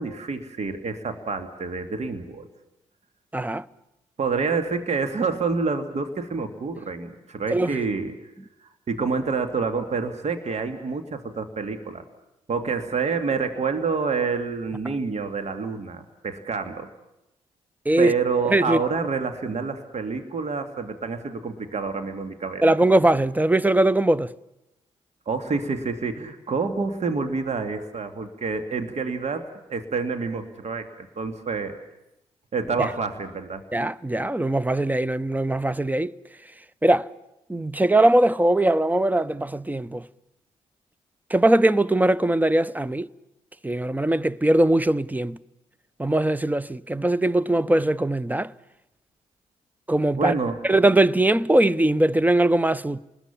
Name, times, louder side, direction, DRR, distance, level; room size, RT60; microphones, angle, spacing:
voice 1, 0.0-2.5 4.2-8.1 8.6-12.0 12.5-16.9 18.0-22.6 25.3-31.8 32.5-33.6 50.2-50.6, right 4 dB, 50° right, 2.4 m, -28 dB
voice 2, 3.3-3.7 7.5-7.8 17.8-18.1 18.5-18.8 22.6-24.3 32.8-32.9 33.7-36.1 36.8-37.1 37.5-40.1 41.3-43.1 43.6-45.4 46.0-48.5 49.9-50.3 50.6-53.0, right 1 dB, 10° right, 0.9 m, -21 dB
28.0 x 20.5 x 7.3 m
hypercardioid pair, 45°, 14 cm